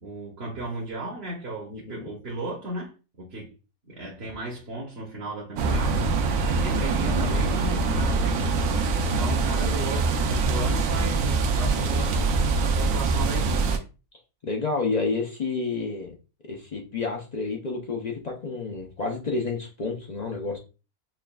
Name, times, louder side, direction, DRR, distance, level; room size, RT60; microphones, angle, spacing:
voice 1, 0.0-3.6 3.9-13.8, right 2 dB, 50° right, 1.0 m, -36 dB
voice 2, 1.7-2.1 9.6-10.0 14.4-16.1 16.4-20.6, left 4 dB, 60° left, 0.4 m, -30 dB
sound 1, 5.6-13.8, right 3 dB, 70° right, 0.9 m, -24 dB
5.8 x 2.3 x 2.2 m
omnidirectional pair, 1.5 m